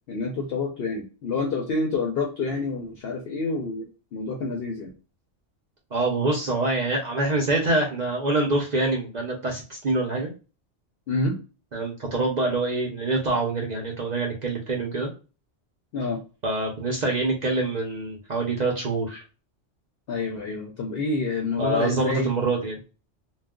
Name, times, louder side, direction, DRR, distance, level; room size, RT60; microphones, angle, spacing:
voice 1, 0.1-4.9 11.1-11.4 15.9-16.2 20.1-22.4, left 3 dB, 60° left, 1 dB, 0.7 m, -28 dB
voice 2, 5.9-10.3 11.7-15.1 16.4-19.2 21.6-22.8, right 2 dB, 45° right, -1 dB, 0.6 m, -25 dB
2.3 x 2.2 x 3.6 m, 0.33 s
omnidirectional pair, 1.3 m